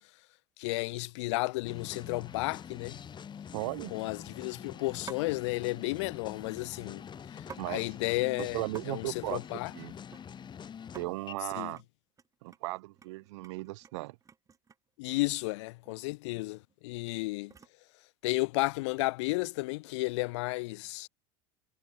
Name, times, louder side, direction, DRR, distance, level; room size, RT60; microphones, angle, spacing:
voice 1, 0.6-3.0 3.9-7.0 7.3-8.6 8.9-9.7 11.5-11.7 15.0-17.5 18.2-21.1, left 22 dB, 70° left, 0.6 m, -33 dB
sound 1, 0.9-1.1 1.6-1.9 2.2-2.3 2.7-3.0 3.8-4.4 5.1-5.4 6.7-7.7 8.0-8.1 8.4-8.9 9.1-10.5 10.8-11.1 11.5-11.8 12.2-14.9 15.9-16.0 16.3-17.9 18.5-18.9, right 6 dB, 20° right, 0.8 m, -52 dB
sound 2, 1.6-11.3, left 8 dB, 30° left, 2.0 m, -46 dB
voice 2, 3.5-3.9 7.6-7.8 8.4-9.4 9.7-9.9 10.9-11.8 12.4-14.2, right 21 dB, 70° right, 0.7 m, -36 dB
hypercardioid pair, 95°, 15 cm